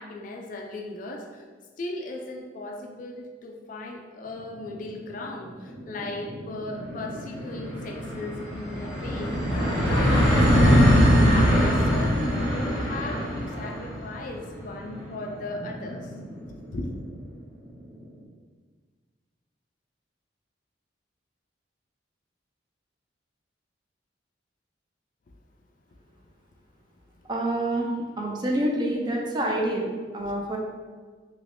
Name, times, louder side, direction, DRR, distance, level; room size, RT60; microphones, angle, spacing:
voice 1, 0.0-1.4 1.8-16.1 16.7-16.9 30.2-30.3, left 2 dB, 45° left, 2 dB, 0.3 m, -37 dB
sound 1, 4.8-4.9 5.3-5.4 5.6-17.0, equal, 5° right, 1.1 m, -23 dB
voice 2, 27.3-27.9 28.2-29.9 30.1-30.6, right 1 dB, 25° right, -1 dB, 0.4 m, -27 dB
3.3 x 2.9 x 2.6 m, 1.5 s
head